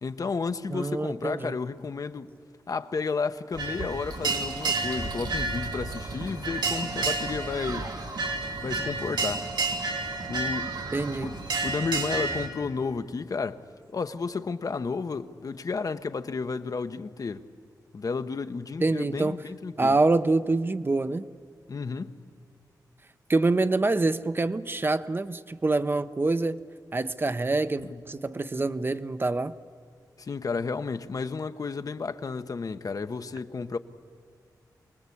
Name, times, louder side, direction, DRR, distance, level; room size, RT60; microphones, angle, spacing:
voice 1, 0.0-2.3 2.7-7.9 8.6-9.5 10.3-10.8 11.2-13.6 13.9-17.5 17.9-20.0 21.7-22.2 27.8-28.0 30.2-33.8, left 4 dB, 55° left, 0.9 m, -32 dB
voice 2, 0.7-1.6 10.9-11.4 18.8-19.4 19.8-21.2 23.3-26.6 26.9-29.5, right 3 dB, 30° right, 0.7 m, -26 dB
sound 1, 3.5-12.5, right 3 dB, 85° right, 2.9 m, -30 dB
25.0 x 20.0 x 8.4 m
wide cardioid pair, 90°, 7 cm